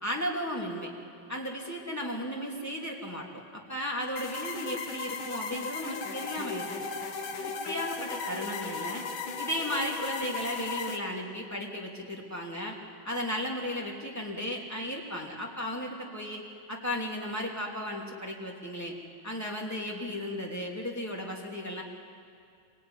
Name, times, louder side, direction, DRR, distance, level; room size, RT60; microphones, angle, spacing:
voice 1, 0.0-0.9 1.3-6.9 7.6-9.0 9.4-12.8 13.0-18.9 19.2-21.8, equal, 10° left, -2 dB, 3.0 m, -35 dB
sound 1, 4.2-11.0, left 4 dB, 85° left, 2.1 m, -36 dB
25.5 x 18.5 x 9.8 m, 2.3 s
omnidirectional pair, 2.2 m